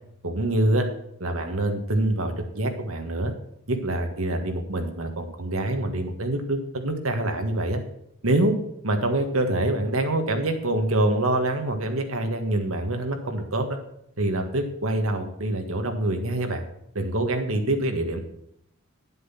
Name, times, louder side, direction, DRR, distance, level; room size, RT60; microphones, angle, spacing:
voice 1, 0.2-0.9 1.2-3.3 3.7-7.8 8.2-8.6 8.8-13.8 14.2-16.6 16.9-18.2, right 1 dB, 70° right, 5 dB, 1.6 m, -25 dB
10.0 x 7.6 x 5.9 m, 0.75 s
head